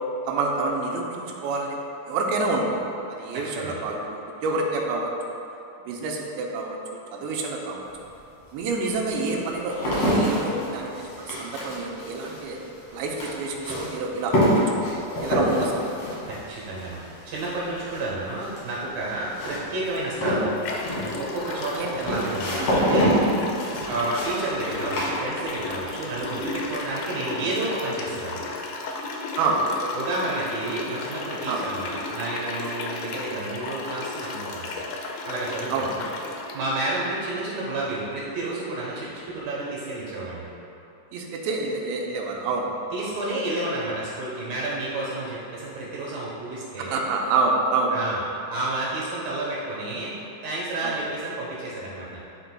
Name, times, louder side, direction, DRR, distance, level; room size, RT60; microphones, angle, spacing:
voice 1, 0.3-1.8 2.1-5.4 5.8-7.9 8.5-10.9 11.2-12.6 12.9-16.2 21.8-22.2 23.9-24.0 29.4-29.9 31.5-31.6 35.7-35.9 41.1-42.7 43.0-43.1 46.8-48.0 50.8-51.0, right 3 dB, 90° right, -1 dB, 3.0 m, -28 dB
voice 2, 3.3-3.8 16.3-17.0 17.3-20.5 21.2-23.2 23.9-28.5 29.9-34.7 35.3-36.1 36.5-40.5 42.9-47.0 47.9-48.2 48.5-50.2 50.4-52.2, right 2 dB, 70° right, -6 dB, 2.5 m, -30 dB
sound 1, 7.9-8.0 8.7-25.8 26.1-26.7, equal, 55° left, 2.1 m, -27 dB
sound 2, 19.9-20.0 20.6-36.6, left 3 dB, 90° left, 2.9 m, -34 dB
11.0 x 5.0 x 2.2 m, 2.9 s
omnidirectional pair, 4.9 m